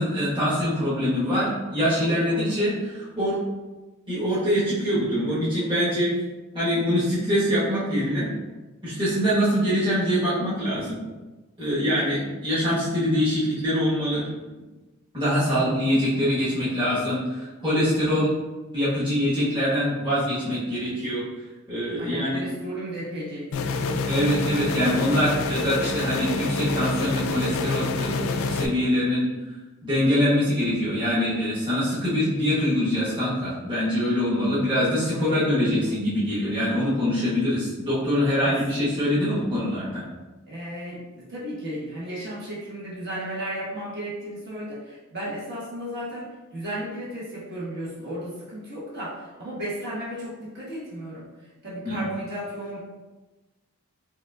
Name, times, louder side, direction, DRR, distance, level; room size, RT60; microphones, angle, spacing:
voice 1, 0.0-3.4 4.1-6.1 6.5-8.3 8.8-11.0 11.6-14.3 15.1-18.3 18.7-21.3 21.7-22.4 24.1-29.2 29.8-40.0 51.8-52.0, equal, 20° right, -11 dB, 1.2 m, -24 dB
voice 2, 2.0-2.6 15.5-15.8 22.0-24.5 35.1-36.0 38.4-38.6 40.5-51.3 51.6-52.8, right 1 dB, 50° right, -9 dB, 1.3 m, -34 dB
sound 1, 23.5-28.7, left 3 dB, 70° left, 0.3 m, -27 dB
5.3 x 2.4 x 2.4 m, 1.2 s
head